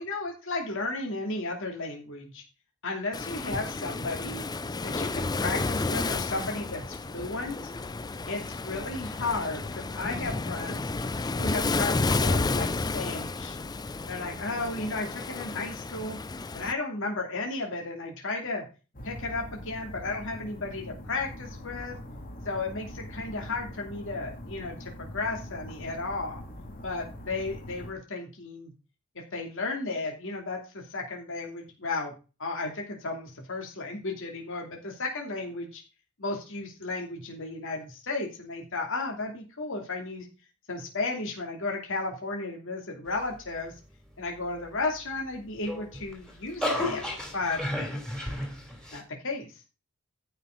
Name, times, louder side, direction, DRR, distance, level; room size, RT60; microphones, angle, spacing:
voice 1, 0.0-2.4 2.8-4.5 4.8-7.6 8.3-10.9 11.4-13.6 14.1-16.2 16.5-18.6 19.0-22.0 22.4-26.4 26.8-28.7 29.1-32.1 32.4-35.8 36.2-40.3 40.7-43.7 44.2-47.0 47.3-47.6 48.9-49.5, left 3 dB, 60° left, 1 dB, 2.7 m, -34 dB
Waves surf, 3.1-16.7, left 3 dB, 20° left, 0.4 m, -31 dB
sound 1, 18.9-27.9, left 1 dB, 40° left, 2.4 m, -43 dB
sound 2, 45.5-49.0, left 1 dB, 5° left, 2.9 m, -32 dB
14.5 x 5.9 x 3.9 m, 0.32 s
head